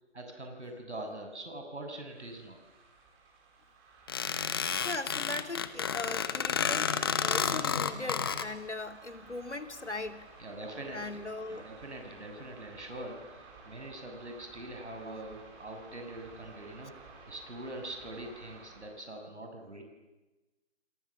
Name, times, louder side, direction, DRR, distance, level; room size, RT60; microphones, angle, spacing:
voice 1, 0.1-2.6 10.4-11.0 11.5-13.2 13.7-16.9 17.3-19.8, right 1 dB, 80° right, 4 dB, 6.8 m, -43 dB
sound 1, 2.0-19.0, right 4 dB, 15° right, 4.0 m, -54 dB
sound 2, 4.1-8.5, left 6 dB, 20° left, 1.1 m, -31 dB
voice 2, 4.8-10.3 10.9-11.6, left 2 dB, 90° left, 9 dB, 2.9 m, -39 dB
29.0 x 28.0 x 7.3 m, 1.1 s
figure-of-eight pair, 160°, 34 cm